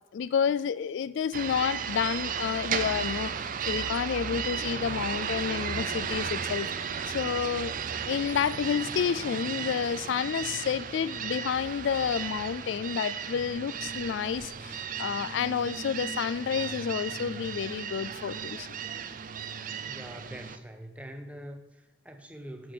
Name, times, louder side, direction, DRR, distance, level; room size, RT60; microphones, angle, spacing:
voice 1, 0.1-7.7 8.0-18.8, left 7 dB, 65° left, 16 dB, 0.3 m, -30 dB
sound 1, 1.3-20.6, right 7 dB, 40° right, 0.5 m, -35 dB
voice 2, 19.9-22.7, equal, 5° right, 7 dB, 0.7 m, -44 dB
8.9 x 5.3 x 6.7 m, 1.1 s
head